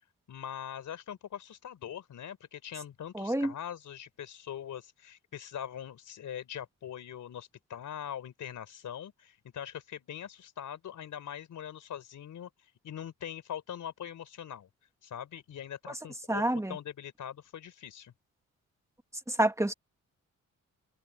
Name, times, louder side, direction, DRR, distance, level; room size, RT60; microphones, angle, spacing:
voice 1, 0.3-12.5 12.8-14.7 15.0-16.4 16.7-18.1, left 9 dB, 80° left, 4.4 m, -42 dB
voice 2, 3.1-3.5 16.3-16.8 19.3-19.7, right 1 dB, 10° right, 2.0 m, -28 dB
cardioid pair, 110°, 30 cm